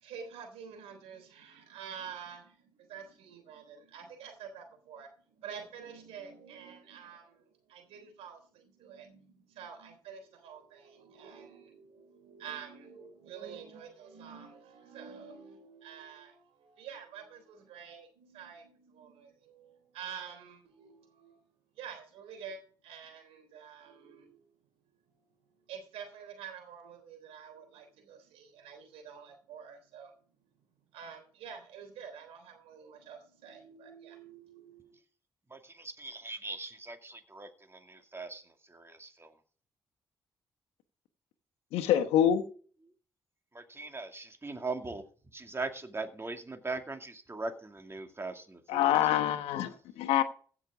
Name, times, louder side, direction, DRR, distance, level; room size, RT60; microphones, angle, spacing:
voice 1, 0.0-5.1 5.4-21.4 21.8-24.4 25.7-30.1 30.9-34.9, right 7 dB, 85° right, 6 dB, 3.5 m, -48 dB
voice 2, 35.5-39.3 43.5-45.0 45.3-49.3, right 3 dB, 25° right, 6 dB, 2.3 m, -40 dB
voice 3, 41.7-42.4 48.7-50.2, left 11 dB, 85° left, 7 dB, 1.1 m, -26 dB
16.0 x 6.1 x 4.9 m, 0.42 s
hypercardioid pair, 45°, 10 cm